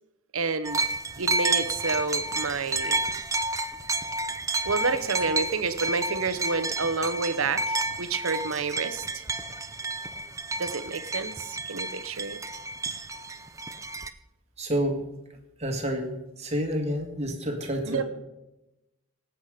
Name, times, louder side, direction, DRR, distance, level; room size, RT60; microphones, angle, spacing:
voice 1, 0.3-0.8 1.2-3.0 4.6-9.2 10.6-12.4 17.9-18.0, right 4 dB, 70° right, 11 dB, 0.9 m, -29 dB
sound 1, 0.6-14.1, right 2 dB, 15° right, 0.5 m, -31 dB
voice 2, 14.6-15.0 15.3-18.0, equal, 30° right, 3 dB, 2.0 m, -29 dB
19.0 x 8.2 x 5.0 m, 0.96 s
head